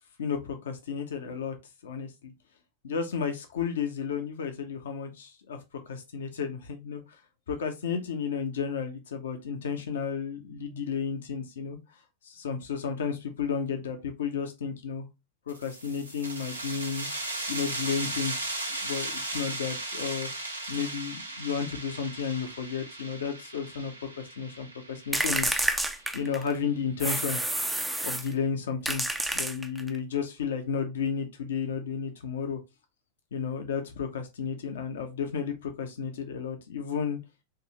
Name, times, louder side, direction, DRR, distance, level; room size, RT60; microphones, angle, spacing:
voice 1, 0.2-1.6 1.8-2.3 2.8-5.6 5.9-7.0 7.5-11.8 12.2-15.1 15.5-17.1 17.5-20.3 20.7-25.6 26.1-27.4 28.0-29.0 29.3-32.6 33.3-37.2, left 6 dB, 65° left, 5 dB, 0.7 m, -32 dB
sound 1, 15.5-26.8, right 2 dB, 80° right, 0.8 m, -37 dB
sound 2, 25.1-26.6 27.0-28.3 28.8-30.0, right 1 dB, 5° right, 0.5 m, -29 dB
4.6 x 2.6 x 3.1 m, 0.24 s
figure-of-eight pair, 90°, 0 cm